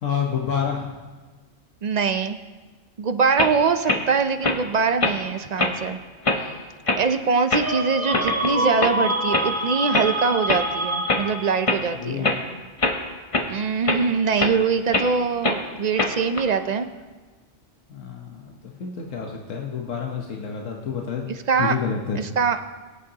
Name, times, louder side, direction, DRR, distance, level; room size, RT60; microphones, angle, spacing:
voice 1, 0.0-1.0 11.9-12.3 17.9-21.3 21.6-22.4, left 6 dB, 85° left, 0 dB, 1.4 m, -29 dB
voice 2, 1.8-2.4 3.0-6.0 6.4-6.5 7.0-12.3 13.5-16.9 21.5-21.8 22.2-22.6, right 5 dB, 55° right, 9 dB, 0.5 m, -23 dB
sound 1, 3.4-3.5 3.9-4.0 4.4-4.6 5.0-5.2 5.6-5.8 6.2-6.4 6.9-7.0 7.5-7.7 8.1-8.5 8.8-8.9 9.3-9.5 9.9-10.1 10.5-10.6 11.1-11.2 11.7-11.8 12.2-12.4 12.8-13.0 13.3-13.5 13.8-14.0 14.4-14.5 14.9-15.1 15.4-15.6 16.0-16.4, left 2 dB, 30° left, 1.0 m, -22 dB
sound 2, 7.6-11.7, right 1 dB, 10° right, 1.6 m, -26 dB
21.5 x 8.5 x 2.8 m, 1.3 s
omnidirectional pair, 1.3 m